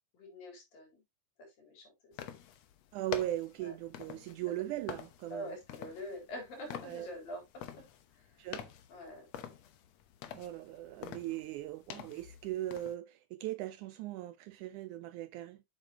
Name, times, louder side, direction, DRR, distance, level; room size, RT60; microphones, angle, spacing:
voice 1, 0.1-1.0 1.4-2.2 3.6-3.8 4.5-4.6 5.3-7.9 8.1-8.5 8.9-9.3, equal, 85° left, 5.5 m, -46 dB
sound 1, 2.1-12.9, left 9 dB, 70° left, 1.7 m, -47 dB
voice 2, 2.9-5.6 6.9-7.1 8.4-8.7 10.3-15.6, right 14 dB, 80° right, 1.8 m, -39 dB
8.1 x 7.6 x 2.9 m
omnidirectional pair, 3.9 m